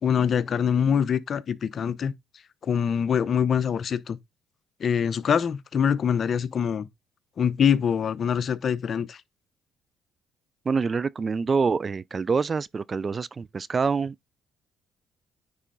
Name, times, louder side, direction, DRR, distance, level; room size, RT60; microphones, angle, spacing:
voice 1, 0.0-2.1 2.6-4.2 4.8-6.9 7.4-9.2, left 7 dB, 50° left, 0.7 m, -24 dB
voice 2, 10.7-14.3, right 5 dB, 35° right, 0.4 m, -26 dB
9.7 x 4.2 x 3.8 m
supercardioid pair, 75°, 0 cm